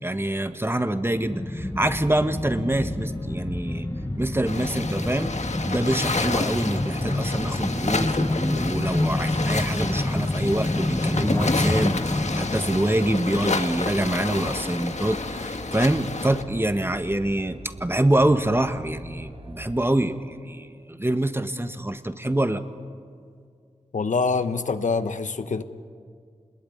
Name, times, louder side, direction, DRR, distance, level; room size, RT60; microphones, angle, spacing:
voice 1, 0.0-3.9 4.2-5.3 5.6-22.6, right 1 dB, 20° right, 9 dB, 1.6 m, -25 dB
sound 1, 1.2-14.3 14.6-14.7, left 1 dB, 20° left, 1.1 m, -28 dB
sound 2, 1.6-19.8, right 1 dB, 50° right, 5.5 m, -41 dB
sound 3, 4.5-16.4, left 3 dB, 65° left, 1.6 m, -30 dB
voice 2, 23.9-25.6, left 4 dB, 85° left, 10 dB, 1.1 m, -25 dB
27.5 x 20.5 x 9.5 m, 2.1 s
cardioid pair, 45°, 12 cm